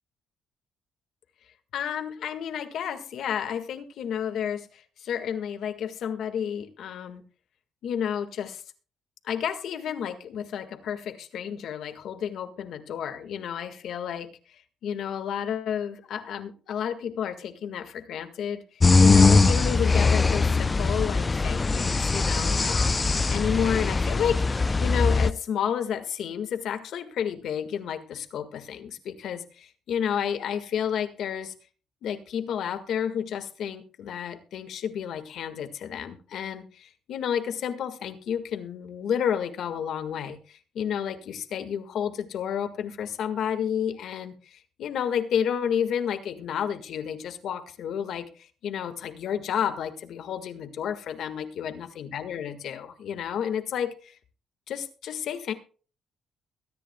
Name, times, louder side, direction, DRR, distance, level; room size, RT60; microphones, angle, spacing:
voice 1, 1.7-7.2 7.8-8.6 9.2-23.0 23.3-31.5 32.0-54.2 54.7-55.5, left 8 dB, 75° left, 8 dB, 1.7 m, -31 dB
sound 1, 18.8-25.3, left 3 dB, 25° left, 0.5 m, -21 dB
22.5 x 10.0 x 2.3 m, 0.38 s
cardioid pair, 90°, 0 cm